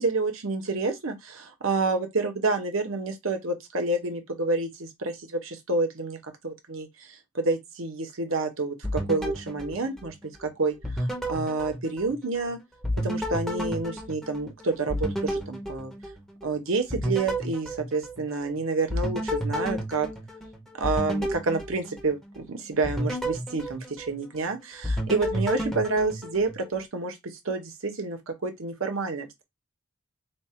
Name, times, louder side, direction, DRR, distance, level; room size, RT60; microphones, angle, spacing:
voice 1, 0.0-6.2 6.4-6.9 7.3-10.1 10.4-12.6 13.0-15.9 16.4-20.1 20.8-29.4, right 3 dB, 75° right, 0.9 m, -29 dB
sound 1, 8.8-10.4 10.8-12.5 12.8-16.5 16.9-18.5 18.9-22.4 22.8-24.5 24.8-26.8, equal, ahead, 0.7 m, -32 dB
3.2 x 2.3 x 4.3 m
head